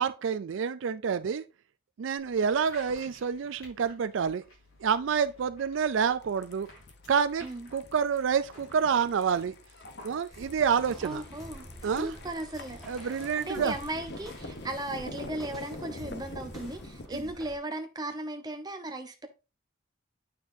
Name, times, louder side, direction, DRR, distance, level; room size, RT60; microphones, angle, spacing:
voice 1, 0.0-1.4 2.0-4.4 4.8-6.7 7.1-7.5 7.7-9.6 10.0-11.2 11.8-12.1 12.9-13.7, right 6 dB, 70° right, 0.4 m, -28 dB
sound 1, 2.2-16.8, left 2 dB, 90° left, 4.2 m, -56 dB
sound 2, 6.2-17.1, left 2 dB, 55° left, 0.9 m, -46 dB
sound 3, 10.3-17.6, right 1 dB, ahead, 1.6 m, -48 dB
voice 2, 11.0-11.7 12.0-19.3, right 1 dB, 20° right, 0.9 m, -37 dB
9.1 x 5.8 x 2.7 m
head